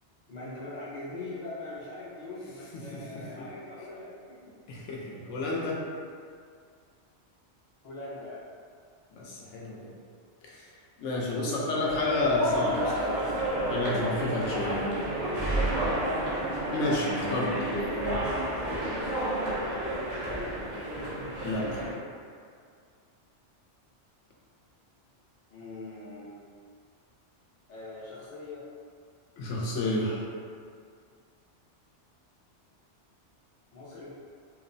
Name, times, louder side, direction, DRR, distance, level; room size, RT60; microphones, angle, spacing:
voice 1, 0.3-4.4 7.8-8.4 20.2-20.6 25.5-26.3 27.7-28.6 33.7-34.2, left 2 dB, 45° left, -8 dB, 0.7 m, -41 dB
voice 2, 4.7-5.8 9.1-9.9 10.4-10.7 11.0-14.9 16.7-17.6 21.4-21.8 29.4-30.3, left 2 dB, 80° left, -4 dB, 0.9 m, -30 dB
sound 1, 11.8-22.0, right 1 dB, 50° right, 0.6 m, -30 dB
2.9 x 2.0 x 2.5 m, 2.2 s
omnidirectional pair, 1.2 m